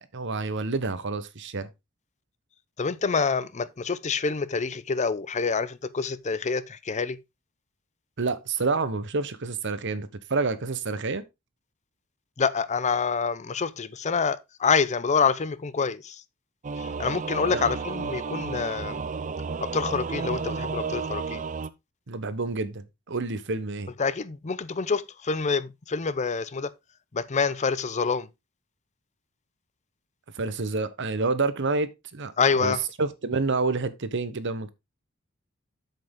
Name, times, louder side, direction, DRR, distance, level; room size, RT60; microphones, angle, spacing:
voice 1, 0.1-1.7 8.2-11.2 17.5-17.6 22.1-23.9 30.3-32.3 32.6-34.7, right 3 dB, 60° right, 1.0 m, -28 dB
voice 2, 2.8-7.2 12.4-16.2 16.8-19.0 19.6-21.4 24.0-26.7 27.1-28.3 32.4-32.8, left 5 dB, 35° left, 0.6 m, -27 dB
Singing / Musical instrument, 16.6-21.7, right 5 dB, 35° right, 0.5 m, -32 dB
7.6 x 7.6 x 3.7 m
head